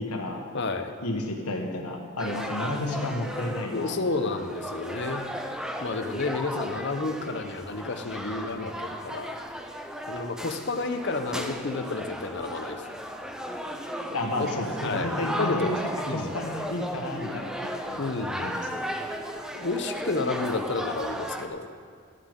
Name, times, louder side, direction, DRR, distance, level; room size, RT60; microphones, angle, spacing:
voice 1, 0.0-0.4 1.0-4.4 14.1-15.8 16.1-18.0 18.4-19.0, left 1 dB, 85° left, 2 dB, 1.5 m, -32 dB
voice 2, 0.5-0.9 3.7-5.2 5.8-9.3 10.1-12.9 14.4-14.5 14.8-15.7 16.1-16.3 18.0-18.7 19.5-21.7, left 3 dB, 50° left, 7 dB, 0.7 m, -31 dB
sound 1, 2.2-21.5, equal, 5° right, 0.4 m, -35 dB
13.0 x 11.0 x 3.7 m, 2.3 s
head